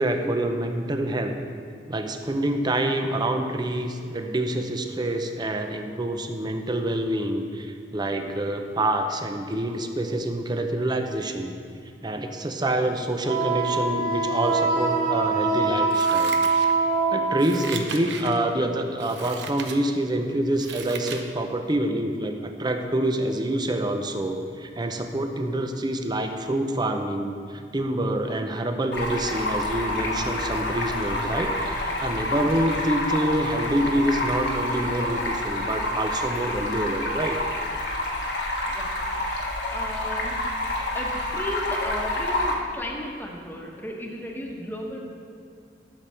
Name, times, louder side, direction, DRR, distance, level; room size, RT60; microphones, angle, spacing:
voice 1, 0.0-1.4 1.9-11.6 12.0-16.4 17.1-37.4, right 1 dB, 25° right, 6 dB, 0.7 m, -26 dB
Wind instrument woodwind instrument, 13.2-17.7, right 4 dB, 55° right, 2.6 m, -23 dB
Scissors, 15.9-17.0 17.4-18.4 19.0-19.8 20.2-21.3 21.7-21.8, right 5 dB, 90° right, 0.8 m, -37 dB
Stream, 28.9-42.5, left 1 dB, 70° left, 1.3 m, -28 dB
voice 2, 39.2-40.5 40.9-45.0, left 1 dB, 10° left, 0 dB, 1.2 m, -35 dB
12.0 x 6.8 x 4.4 m, 2.3 s
head